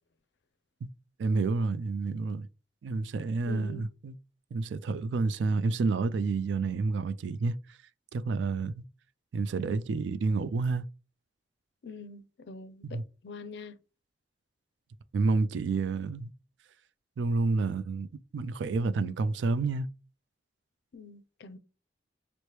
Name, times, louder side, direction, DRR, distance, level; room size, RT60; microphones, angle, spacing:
voice 1, 1.2-2.5 2.8-4.1 4.5-7.8 8.1-8.8 9.3-10.8 12.8-13.0 15.1-16.3 17.2-18.1 18.3-19.9, right 3 dB, 80° right, 0.3 m, -29 dB
voice 2, 3.5-3.9 11.8-13.8 20.9-21.6, left 3 dB, 70° left, 0.4 m, -44 dB
4.4 x 2.1 x 3.1 m
head